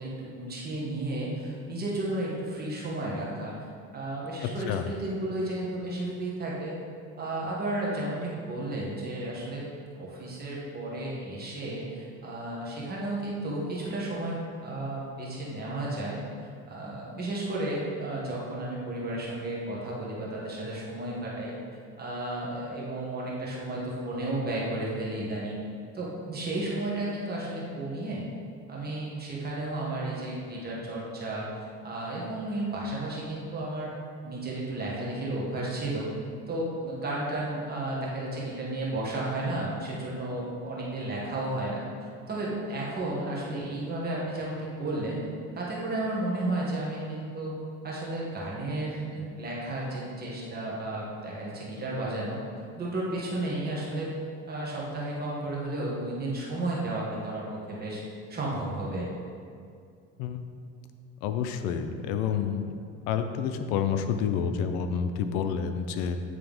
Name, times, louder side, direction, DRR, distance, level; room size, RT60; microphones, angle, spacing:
voice 1, 0.0-3.5 3.9-6.7 7.2-9.6 10.0-16.2 16.7-21.5 22.0-25.6 25.9-28.2 28.7-31.5 31.8-33.9 34.2-36.1 36.5-45.2 45.5-47.5 47.8-52.4 52.8-54.1 54.5-58.0 58.3-59.1, right 2 dB, 30° right, -5 dB, 1.5 m, -33 dB
voice 2, 61.2-62.6 63.1-66.2, left 7 dB, 80° left, 8 dB, 0.6 m, -29 dB
9.3 x 3.4 x 3.5 m, 2.3 s
cardioid pair, 120°, 32 cm